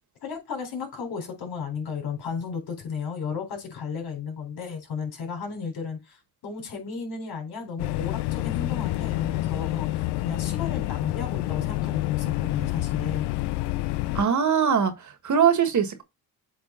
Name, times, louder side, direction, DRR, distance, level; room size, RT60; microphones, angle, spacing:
voice 1, 0.2-13.3, left 5 dB, 70° left, 3.8 m, -34 dB
sound 1, 7.8-14.2, left 17 dB, 85° left, 0.6 m, -28 dB
voice 2, 14.2-16.0, right 7 dB, 45° right, 1.7 m, -22 dB
7.7 x 3.5 x 4.4 m
cardioid pair, 85°, 40 cm